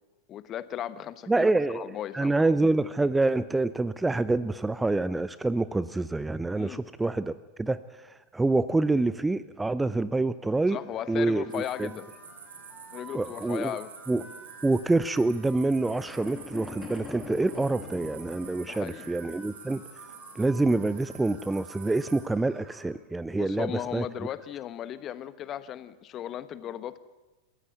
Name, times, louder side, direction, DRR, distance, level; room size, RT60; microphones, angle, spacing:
voice 1, 0.3-1.5 1.7-2.5 6.6-6.8 10.7-12.1 12.9-13.9 18.6-19.1 23.3-27.0, left 11 dB, 30° left, 15 dB, 1.2 m, -36 dB
voice 2, 1.3-7.3 7.6-10.8 11.1-11.9 13.1-13.7 14.1-14.2 14.6-19.8 20.3-24.0, right 2 dB, 10° right, 16 dB, 0.7 m, -26 dB
sound 1, 10.7-22.8, right 3 dB, 25° right, 5.0 m, -52 dB
sound 2, 11.5-22.2, right 6 dB, 65° right, 3.9 m, -49 dB
sound 3, 15.8-19.2, left 4 dB, 15° left, 2.6 m, -43 dB
27.0 x 15.5 x 9.2 m, 1.2 s
figure-of-eight pair, 90°, 0 cm